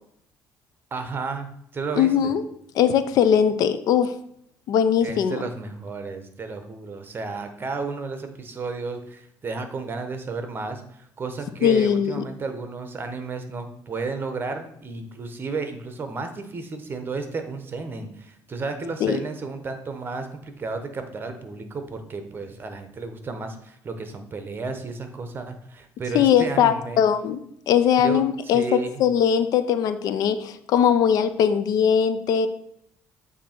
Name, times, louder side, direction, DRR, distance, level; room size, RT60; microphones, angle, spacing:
voice 1, 0.9-2.4 5.0-27.0 28.0-29.0, right 4 dB, 30° right, 7 dB, 0.9 m, -33 dB
voice 2, 2.0-2.4 2.8-4.1 4.7-5.4 11.6-12.2 19.0-19.2 26.1-32.5, left 8 dB, 65° left, 12 dB, 0.4 m, -20 dB
8.3 x 2.8 x 4.4 m, 0.71 s
cardioid pair, 95°, 7 cm